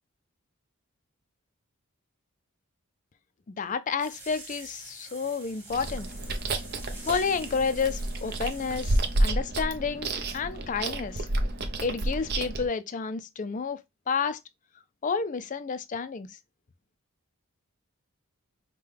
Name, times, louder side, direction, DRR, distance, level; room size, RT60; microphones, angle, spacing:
voice 1, 3.5-6.1 7.1-11.3 11.8-13.8 14.1-14.4 15.0-16.3, left 5 dB, 35° left, 0.4 m, -30 dB
sound 1, 4.0-9.2, right 2 dB, 10° right, 1.5 m, -47 dB
Chewing mastication, 5.7-12.7, right 1 dB, 50° right, 0.6 m, -30 dB
5.4 x 2.2 x 3.3 m
head